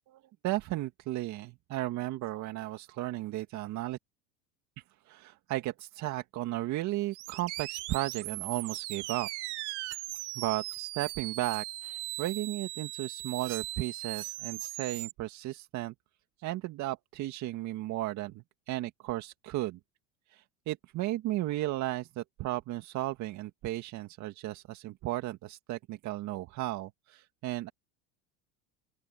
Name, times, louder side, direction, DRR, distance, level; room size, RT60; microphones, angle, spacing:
voice 1, 0.1-4.0 5.1-9.3 10.4-15.9 16.4-19.8 20.3-27.7, right 16 dB, 55° right, 2.0 m, -35 dB
sound 1, 7.1-15.1, right 21 dB, 75° right, 1.5 m, -39 dB
open air
supercardioid pair, 95°, 34 cm